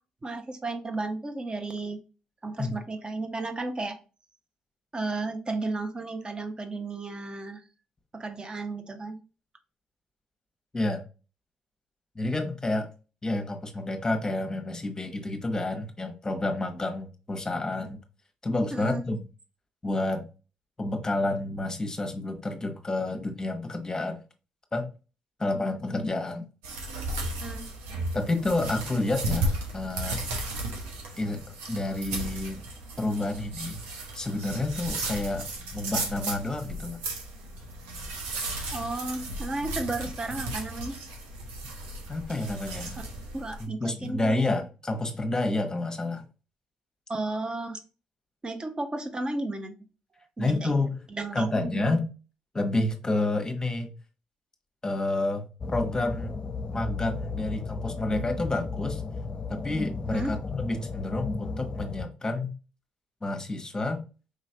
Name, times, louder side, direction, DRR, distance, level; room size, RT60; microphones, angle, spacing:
voice 1, 0.2-2.0 2.4-4.0 4.9-7.6 8.1-9.2 18.7-19.0 27.4-27.6 38.7-41.0 43.3-44.5 47.1-47.8 48.4-49.7 50.4-50.7 51.1-51.9 60.1-60.3, right 2 dB, 30° right, 1.0 m, -33 dB
voice 2, 12.1-12.9 13.2-18.0 18.4-19.2 19.8-20.3 20.8-24.2 24.7-24.9 25.4-26.4 28.1-30.2 31.2-31.4 31.7-32.6 33.0-37.0 42.1-43.0 43.6-46.2 50.4-51.0 51.3-52.1 52.5-53.9 54.8-56.4 56.7-59.0 59.5-62.5 63.2-64.0, left 2 dB, 20° left, 1.1 m, -29 dB
sound 1, 26.6-43.6, right 2 dB, 80° right, 1.0 m, -35 dB
sound 2, 55.6-62.1, left 4 dB, 35° left, 0.5 m, -34 dB
5.0 x 3.1 x 2.8 m
hypercardioid pair, 50°, 3 cm